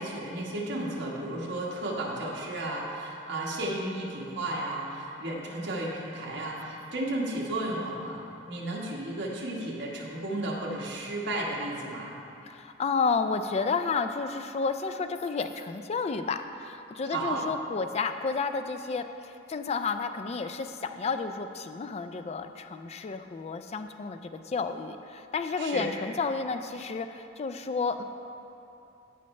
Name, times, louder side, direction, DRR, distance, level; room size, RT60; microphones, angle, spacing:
voice 1, 0.0-8.2 8.5-12.1 17.1-17.4 25.6-25.9, right 1 dB, 60° right, -4 dB, 1.4 m, -33 dB
voice 2, 12.5-28.0, left 4 dB, 30° left, 8 dB, 0.3 m, -31 dB
14.0 x 5.3 x 3.2 m, 2.8 s
head